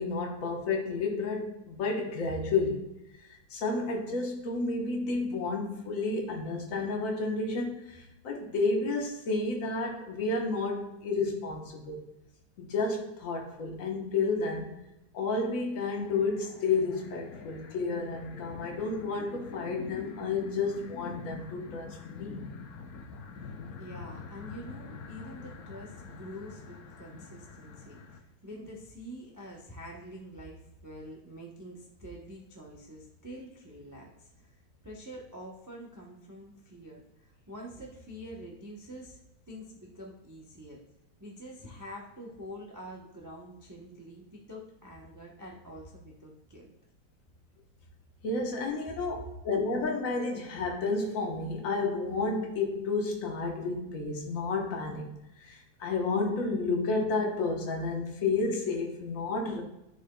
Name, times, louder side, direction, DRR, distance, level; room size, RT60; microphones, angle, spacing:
voice 1, 0.0-2.8 3.5-12.0 12.6-14.7 15.1-22.4 48.2-59.6, left 3 dB, 45° left, 0 dB, 1.3 m, -31 dB
sound 1, 15.8-28.2, left 5 dB, 70° left, 0.9 m, -45 dB
voice 2, 23.8-39.2 39.5-40.8 41.2-46.7 48.9-49.0, equal, 25° right, -2 dB, 0.3 m, -46 dB
10.5 x 4.2 x 2.3 m, 0.88 s
omnidirectional pair, 2.2 m